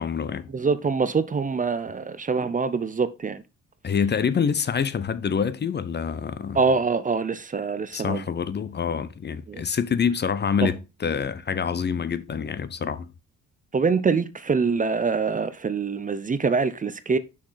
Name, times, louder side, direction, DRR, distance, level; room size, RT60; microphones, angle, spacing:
voice 1, 0.0-0.5 3.8-6.6 7.9-13.1, left 6 dB, 35° left, 0.7 m, -26 dB
voice 2, 0.5-3.4 6.5-8.2 9.5-9.6 10.6-10.7 13.7-17.2, right 5 dB, 25° right, 0.6 m, -24 dB
6.2 x 6.0 x 3.9 m
cardioid pair, 90°, 30 cm